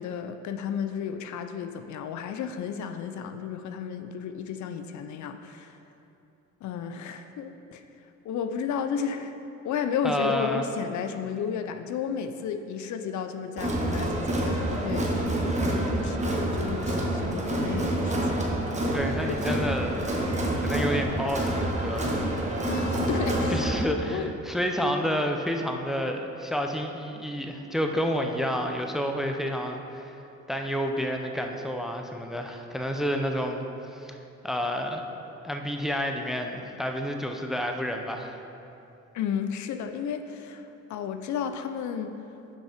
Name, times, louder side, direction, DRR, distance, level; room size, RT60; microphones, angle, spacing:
voice 1, 0.0-5.8 6.6-7.8 8.2-9.3 9.6-15.1 15.6-18.5 19.5-19.6 22.6-23.7 24.1-24.3 39.1-42.1, left 7 dB, 70° left, 8 dB, 0.5 m, -33 dB
voice 2, 10.0-10.7 18.9-20.0 20.6-22.2 23.5-30.1 30.5-34.2 34.4-35.0 35.4-38.4, equal, ahead, 3 dB, 0.5 m, -29 dB
Crowd, 13.6-23.8, right 1 dB, 25° right, 1.2 m, -27 dB
6.2 x 5.4 x 5.0 m, 2.8 s
cardioid pair, 90°, 30 cm